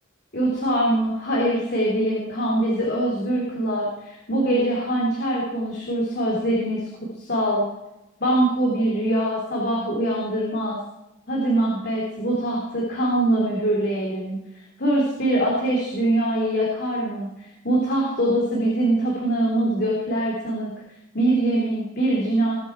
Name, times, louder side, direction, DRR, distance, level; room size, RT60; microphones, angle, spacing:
voice 1, 0.3-6.8 7.2-7.6 8.2-10.8 11.3-14.4 14.8-17.3 17.6-20.7 21.1-22.5, right 1 dB, 55° left, -3 dB, 3.4 m, -23 dB
21.0 x 8.3 x 4.7 m, 0.92 s
head